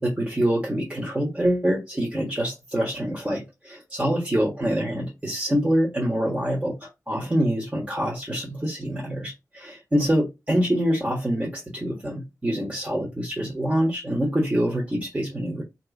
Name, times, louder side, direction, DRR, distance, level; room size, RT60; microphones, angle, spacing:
voice 1, 0.0-15.6, equal, 20° right, 1.4 m, -25 dB
2.9 x 2.4 x 3.7 m
cardioid pair, 50°, 6 cm